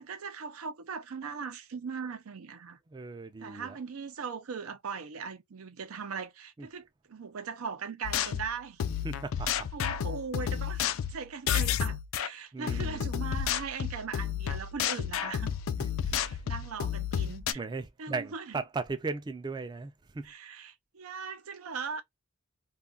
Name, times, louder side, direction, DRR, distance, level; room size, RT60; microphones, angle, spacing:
voice 1, 0.0-2.8 3.4-8.8 9.5-15.5 16.1-17.6 18.0-18.6 20.2-22.0, right 5 dB, 85° right, 0.5 m, -39 dB
voice 2, 2.9-3.8 6.6-6.7 9.0-9.7 12.5-13.1 15.8-16.4 17.5-20.3, right 4 dB, 20° right, 0.3 m, -37 dB
sound 1, 8.0-12.3 12.7-17.5, left 9 dB, 70° left, 0.3 m, -31 dB
2.3 x 2.3 x 3.6 m
head